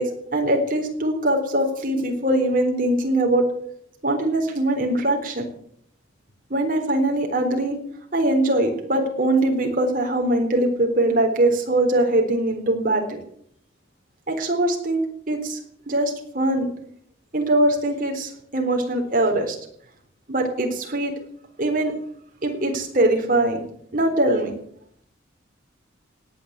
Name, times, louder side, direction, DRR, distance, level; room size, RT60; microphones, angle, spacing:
voice 1, 0.0-3.5 4.0-5.5 6.5-7.8 8.1-13.2 14.3-15.0 15.3-15.6 15.9-16.7 17.3-19.6 20.3-21.1 21.6-21.9 22.4-23.6 23.9-24.5, right 1 dB, 40° right, 2 dB, 3.9 m, -22 dB
18.0 x 9.2 x 8.2 m, 0.66 s
head